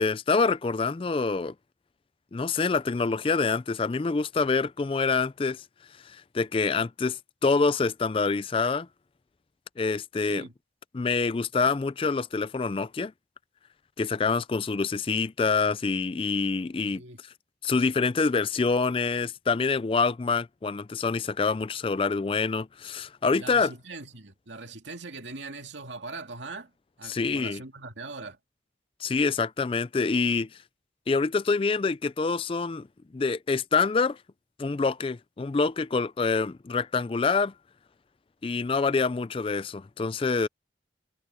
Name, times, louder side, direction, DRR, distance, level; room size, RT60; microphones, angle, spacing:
voice 1, 0.0-1.5 2.3-5.6 6.0-8.9 9.8-10.4 10.9-13.1 14.0-17.0 17.6-23.7 27.1-27.6 29.0-30.5 31.1-32.9 33.1-34.2 34.6-37.5 38.4-40.5, left 4 dB, 30° left, 0.3 m, -26 dB
voice 2, 10.2-10.5 16.9-17.2 23.4-26.7 27.0-28.4, right 3 dB, 80° right, 2.4 m, -41 dB
head